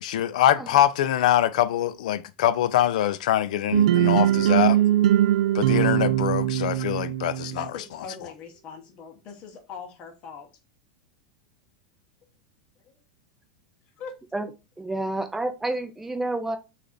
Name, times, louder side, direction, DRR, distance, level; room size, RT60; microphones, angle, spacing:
voice 1, 0.0-4.8 5.5-7.7, left 12 dB, 75° left, 0.4 m, -23 dB
sound 1, 3.7-7.7, right 12 dB, 90° right, 0.3 m, -21 dB
voice 2, 7.4-10.5 14.0-14.1, left 6 dB, 30° left, 0.7 m, -41 dB
voice 3, 14.8-16.6, right 2 dB, 5° right, 0.4 m, -29 dB
3.3 x 2.4 x 3.7 m
supercardioid pair, 170°, 4 cm